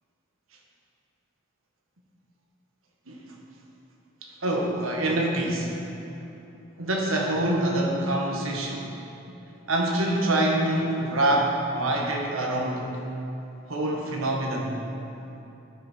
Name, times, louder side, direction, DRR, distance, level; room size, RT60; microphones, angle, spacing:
voice 1, 4.2-5.7 6.8-8.8 9.7-12.9 13.7-14.7, right 1 dB, 75° right, 0 dB, 1.4 m, -25 dB
12.0 x 6.6 x 4.4 m, 3.0 s
head